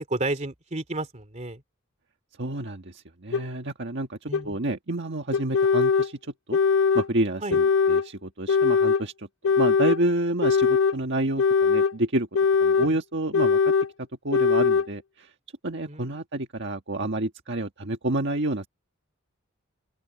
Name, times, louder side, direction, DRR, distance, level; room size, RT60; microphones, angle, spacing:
voice 1, 0.1-1.6 4.3-4.6 7.4-7.6 12.8-13.0 15.9-16.2, right 2 dB, 35° right, 2.8 m, -32 dB
voice 2, 2.4-6.2 6.5-6.6 6.9-9.3 9.6-12.3 12.6-13.7 14.0-15.3 15.6-18.7, right 2 dB, 60° right, 1.6 m, -29 dB
sound 1, 3.3-3.4 4.3-4.4 5.3-6.1 6.5-7.1 7.5-8.1 8.5-9.0 9.4-10.0 10.4-11.0 11.4-11.9 12.3-12.9 13.3-13.9 14.3-14.9, left 5 dB, 75° left, 0.4 m, -21 dB
open air
head